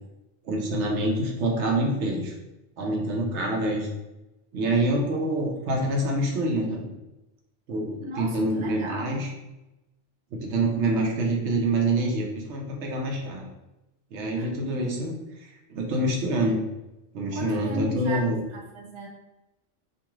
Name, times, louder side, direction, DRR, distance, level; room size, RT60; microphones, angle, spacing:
voice 1, 0.4-2.3 2.8-3.9 4.5-6.9 7.7-9.3 10.3-13.5 14.1-15.1 15.7-16.6 17.1-18.4, right 1 dB, 65° right, 0 dB, 0.9 m, -26 dB
voice 2, 8.0-9.3 14.2-14.5 17.3-18.3 18.5-19.1, equal, 50° right, -1 dB, 0.3 m, -35 dB
2.6 x 2.4 x 2.9 m, 0.96 s
omnidirectional pair, 1.3 m